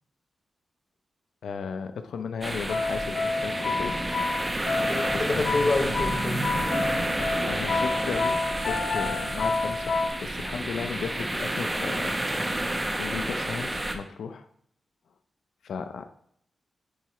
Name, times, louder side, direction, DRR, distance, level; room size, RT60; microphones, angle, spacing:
voice 1, 1.4-4.0 5.1-5.7 7.4-12.2 12.4-14.5 15.6-16.1, left 6 dB, 85° left, 0.5 m, -36 dB
sound 1, 2.4-13.9, right 1 dB, 15° right, 0.8 m, -30 dB
sound 2, 2.7-10.1, left 3 dB, 60° left, 1.3 m, -29 dB
voice 2, 4.9-6.5, left 3 dB, 40° left, 0.7 m, -27 dB
sound 3, 5.9-12.4, right 3 dB, 75° right, 1.1 m, -40 dB
10.0 x 4.7 x 3.0 m
wide cardioid pair, 110°, 0 cm